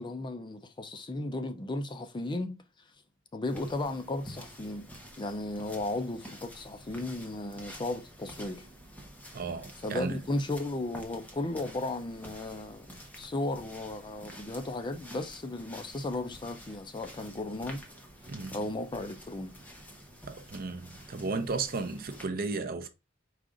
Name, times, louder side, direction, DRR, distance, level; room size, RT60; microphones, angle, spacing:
voice 1, 0.0-2.6 3.3-4.9 5.2-8.6 9.8-12.9 13.2-17.8 18.5-19.6, left 2 dB, 25° left, 0.5 m, -35 dB
sound 1, 3.4-22.3, equal, 10° left, 0.8 m, -49 dB
voice 2, 9.3-10.2 18.3-18.6 20.3-22.9, right 3 dB, 45° right, 0.6 m, -34 dB
4.9 x 2.5 x 3.7 m
head